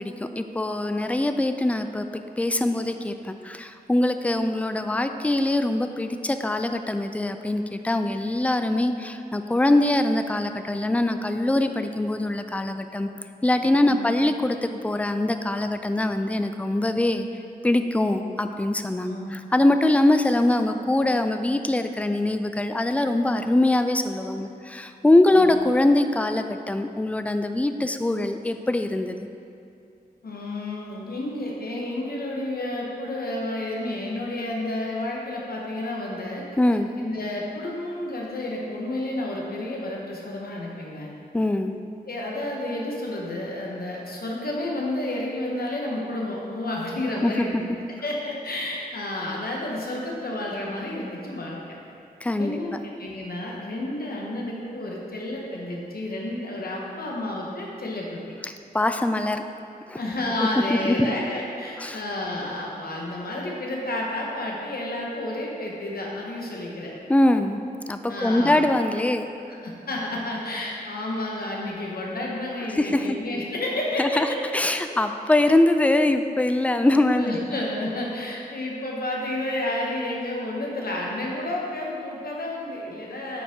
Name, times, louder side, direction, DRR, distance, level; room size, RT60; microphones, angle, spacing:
voice 1, 0.0-13.1 13.4-17.3 17.6-29.2 36.6-36.9 41.3-41.8 47.2-47.5 52.2-52.5 58.4-59.4 59.9-60.0 60.7-61.1 61.8-62.0 67.1-67.6 67.9-69.3 72.7-73.2 74.0-74.3 74.5-77.4, left 1 dB, 10° left, 8 dB, 0.3 m, -23 dB
voice 2, 19.0-19.3 25.3-25.5 30.2-36.4 37.0-41.1 42.1-47.6 48.0-51.6 52.4-58.2 60.0-66.9 68.1-68.7 69.5-74.4 74.9-75.0 76.7-83.4, left 1 dB, 70° left, -2 dB, 1.2 m, -31 dB
9.0 x 5.1 x 3.7 m, 2.6 s
wide cardioid pair, 115°, 16 cm